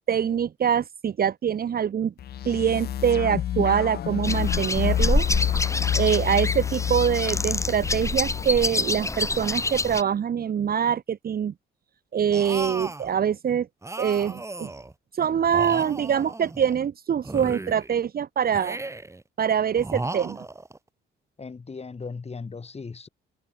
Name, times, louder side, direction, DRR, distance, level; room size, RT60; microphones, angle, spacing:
voice 1, 0.1-2.1 2.4-5.3 5.9-11.5 12.1-13.7 14.0-14.7 15.2-18.8 19.4-20.4, right 8 dB, 50° right, 1.3 m, -24 dB
sound 1, 2.2-8.4, left 11 dB, 55° left, 0.6 m, -28 dB
sound 2, 4.2-10.0, left 2 dB, 15° left, 1.6 m, -27 dB
sound 3, 12.3-13.1 13.8-14.9 15.4-16.8 17.2-18.0 18.5-19.2 19.8-20.8, right 2 dB, 15° right, 1.8 m, -35 dB
voice 2, 21.4-23.1, left 4 dB, 30° left, 5.6 m, -37 dB
open air
cardioid pair, 90°, 20 cm